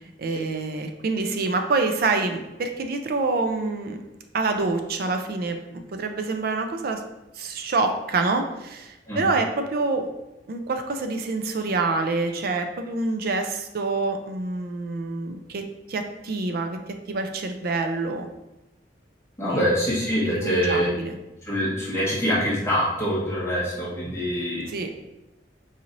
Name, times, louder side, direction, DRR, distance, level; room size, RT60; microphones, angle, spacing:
voice 1, 0.0-4.0 4.3-7.0 7.4-10.1 10.5-16.8 17.1-18.3 19.4-19.7 20.3-21.2 24.7-24.9, right 3 dB, 55° right, 5 dB, 0.4 m, -27 dB
voice 2, 19.4-20.9 21.5-24.7, equal, 15° left, -8 dB, 1.1 m, -24 dB
4.1 x 3.1 x 2.5 m, 0.95 s
head